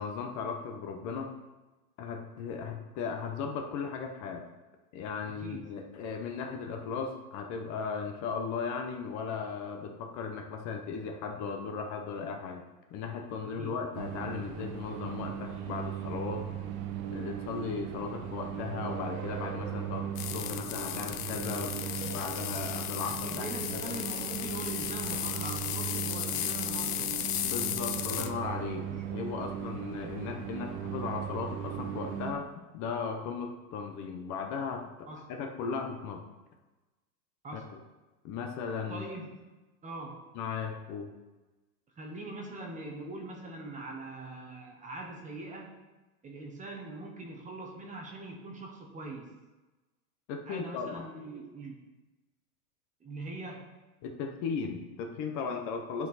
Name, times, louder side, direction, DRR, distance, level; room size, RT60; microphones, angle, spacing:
voice 1, 0.0-1.3 2.0-4.4 4.9-12.6 12.9-16.4 17.1-21.7 22.0-23.9 27.4-34.9 35.3-36.2 37.5-37.6 38.2-39.0 40.3-41.1 50.3-51.1 54.0-56.1, left 5 dB, 40° left, 4 dB, 0.9 m, -36 dB
voice 2, 5.3-5.7 13.4-13.8 23.2-27.2 28.1-28.3 28.8-29.0 35.1-35.2 37.4-37.8 38.9-39.5 39.8-40.3 42.0-45.8 46.2-49.3 50.4-51.8 53.0-53.7, right 2 dB, 15° right, 1 dB, 1.0 m, -42 dB
sound 1, 13.9-32.3, right 9 dB, 60° right, 1.2 m, -38 dB
sound 2, 20.2-28.3, left 12 dB, 90° left, 0.7 m, -35 dB
10.5 x 4.5 x 4.1 m, 1.1 s
supercardioid pair, 140°, 46 cm